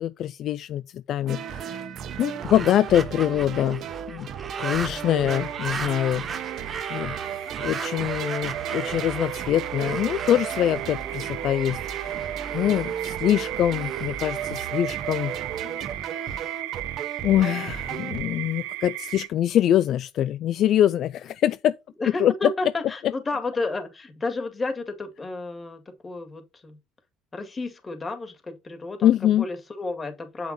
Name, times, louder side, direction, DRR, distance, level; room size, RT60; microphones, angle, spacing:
voice 1, 0.0-1.8 2.2-4.3 4.6-6.3 6.5-16.6 17.2-21.7 22.2-22.3 29.0-29.5, left 11 dB, 55° left, 0.4 m, -24 dB
sound 1, 1.3-18.2, right 9 dB, 55° right, 0.9 m, -34 dB
sound 2, 2.2-15.3, right 5 dB, 35° right, 1.2 m, -38 dB
voice 2, 4.7-5.3 12.7-13.2 22.0-26.8 27.3-29.1 29.4-30.5, left 3 dB, 25° left, 2.1 m, -32 dB
sound 3, 5.2-19.3, right 16 dB, 90° right, 0.9 m, -36 dB
7.4 x 5.8 x 4.2 m
supercardioid pair, 100°, 0 cm